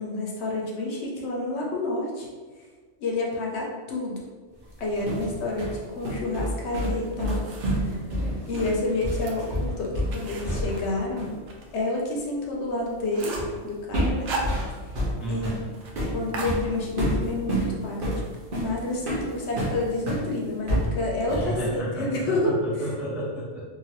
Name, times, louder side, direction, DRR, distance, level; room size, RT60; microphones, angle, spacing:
voice 1, 0.0-2.3 3.0-4.3 4.8-7.5 7.8-8.0 8.5-11.4 11.7-13.3 13.6-14.4 15.3-15.5 16.1-18.2 18.5-22.5, left 2 dB, 65° left, -2 dB, 0.8 m, -29 dB
sound 1, 4.7-10.9 11.2-11.4 13.3-13.6 13.9-20.3 20.7-21.6, equal, 50° right, 0.9 m, -28 dB
sound 2, 6.9-8.0 8.4-11.7 12.0-12.1 12.5-12.6 12.9-13.6 14.0-15.1 15.3-15.4 15.7-15.9 16.3-17.2, right 3 dB, 80° right, 0.9 m, -37 dB
voice 2, 15.2-15.6 21.3-23.6, right 1 dB, ahead, -7 dB, 0.3 m, -32 dB
2.9 x 2.5 x 2.9 m, 1.5 s
omnidirectional pair, 1.3 m